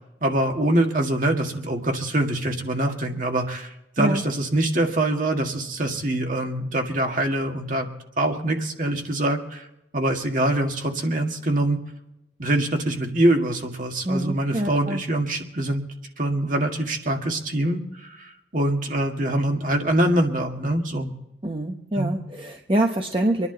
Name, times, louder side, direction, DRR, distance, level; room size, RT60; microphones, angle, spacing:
voice 1, 0.2-9.7 9.9-11.8 12.4-15.8 16.2-21.1 22.0-22.2, right 1 dB, 50° right, 3 dB, 1.8 m, -24 dB
voice 2, 14.0-15.0 21.4-23.5, right 1 dB, 30° right, 2 dB, 0.9 m, -25 dB
26.0 x 11.0 x 4.0 m, 0.89 s
head